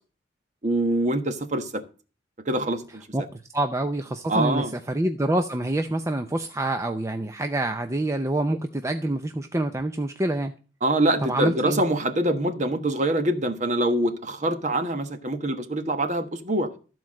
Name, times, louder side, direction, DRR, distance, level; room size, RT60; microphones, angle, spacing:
voice 1, 0.6-1.8 2.5-3.0 4.3-4.7 10.8-16.7, right 1 dB, 40° right, 8 dB, 1.3 m, -24 dB
voice 2, 3.1-10.5 11.3-11.8, right 1 dB, 15° right, 7 dB, 0.5 m, -26 dB
14.0 x 4.6 x 7.4 m, 0.37 s
head